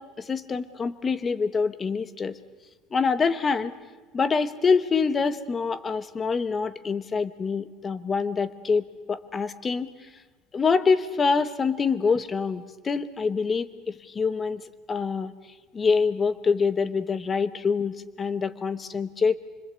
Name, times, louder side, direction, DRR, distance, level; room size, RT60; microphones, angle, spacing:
voice 1, 0.0-2.4 2.9-3.7 4.1-9.9 10.5-14.6 14.9-15.3 15.7-19.4, left 5 dB, 20° left, 14 dB, 1.0 m, -25 dB
26.0 x 24.5 x 8.1 m, 1.3 s
cardioid pair, 170°, 0 cm